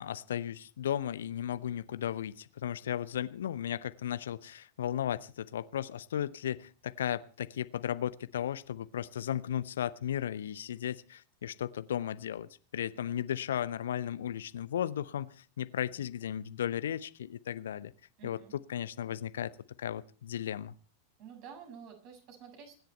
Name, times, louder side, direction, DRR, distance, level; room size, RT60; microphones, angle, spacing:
voice 1, 0.0-17.9 18.2-18.4 18.7-19.5 19.8-20.7, left 10 dB, 60° left, 15 dB, 0.7 m, -35 dB
voice 2, 18.2-18.5 21.2-22.8, right 7 dB, 45° right, 5 dB, 6.5 m, -50 dB
25.0 x 10.5 x 4.4 m, 0.39 s
figure-of-eight pair, 90°, 0 cm